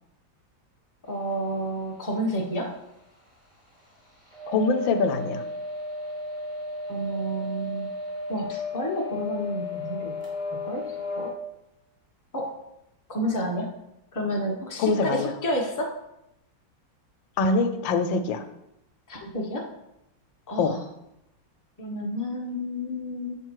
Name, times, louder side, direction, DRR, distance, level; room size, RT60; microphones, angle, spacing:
voice 1, 1.1-2.7 6.9-7.9 8.3-10.2 10.5-11.3 12.3-12.6 13.1-13.7 14.1-15.9 19.1-19.6 20.5-20.8 21.8-23.3, equal, 15° left, -2 dB, 0.7 m, -30 dB
sound 1, 4.3-11.3, left 2 dB, 5° right, 2.1 m, -34 dB
voice 2, 4.5-5.4 14.8-15.3 17.4-18.4 20.6-20.8, left 4 dB, 80° left, 8 dB, 1.3 m, -24 dB
6.7 x 3.5 x 4.6 m, 0.84 s
omnidirectional pair, 2.1 m